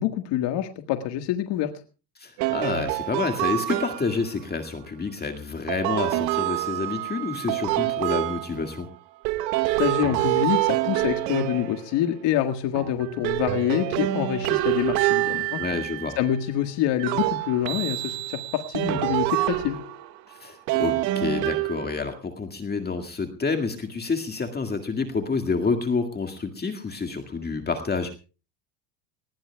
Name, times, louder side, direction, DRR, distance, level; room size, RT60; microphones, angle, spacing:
voice 1, 0.0-1.7 9.8-15.6 16.2-19.8, left 11 dB, 55° left, 6 dB, 1.7 m, -26 dB
voice 2, 2.2-8.9 15.6-16.2 20.3-28.1, left 4 dB, 20° left, 6 dB, 1.9 m, -28 dB
sound 1, 2.4-4.3 5.7-8.8 9.2-12.3 12.7-16.3 17.0-20.1 20.7-22.1, right 16 dB, 85° right, 1.9 m, -27 dB
21.0 x 20.0 x 2.3 m, 0.34 s
supercardioid pair, 120°, 49 cm